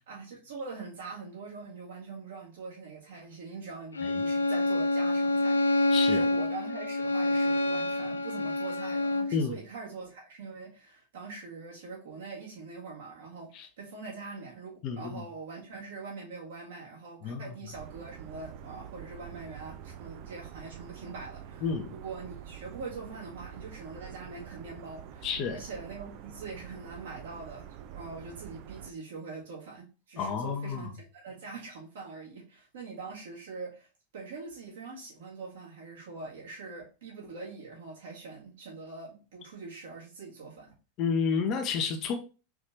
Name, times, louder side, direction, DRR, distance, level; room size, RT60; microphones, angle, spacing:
voice 1, 0.1-21.6 21.9-33.9 34.1-40.7, right 4 dB, 70° right, 1.9 m, -43 dB
Bowed string instrument, 3.9-9.4, left 2 dB, 85° left, 0.4 m, -27 dB
voice 2, 5.9-6.2 9.3-9.5 13.5-13.7 14.8-15.2 17.2-17.5 21.6-21.9 25.2-25.6 30.2-30.9 41.0-42.1, left 5 dB, 45° left, 0.9 m, -30 dB
sound 1, 17.7-28.9, right 9 dB, 50° right, 0.4 m, -46 dB
4.7 x 3.2 x 2.6 m
figure-of-eight pair, 90°, 0 cm